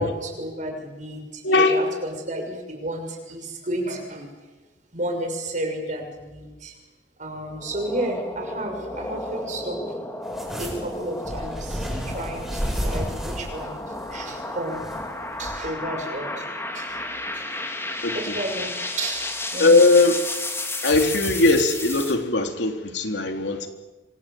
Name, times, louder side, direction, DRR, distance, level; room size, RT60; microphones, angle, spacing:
voice 1, 0.0-4.3 4.9-6.7 7.2-10.0 10.6-14.8 15.4-16.5 16.7-17.0 17.3-17.6 18.1-18.7 19.0-19.8, right 1 dB, 45° right, 3 dB, 6.4 m, -32 dB
voice 2, 1.4-1.9 18.0-18.4 19.6-20.2 20.8-23.7, left 3 dB, 75° left, 5 dB, 3.1 m, -19 dB
sound 1, 7.5-22.1, left 2 dB, 15° left, 2.8 m, -33 dB
sound 2, 10.3-15.1 15.5-15.6, equal, ahead, 8.0 m, -31 dB
27.5 x 25.0 x 7.6 m, 1.2 s
head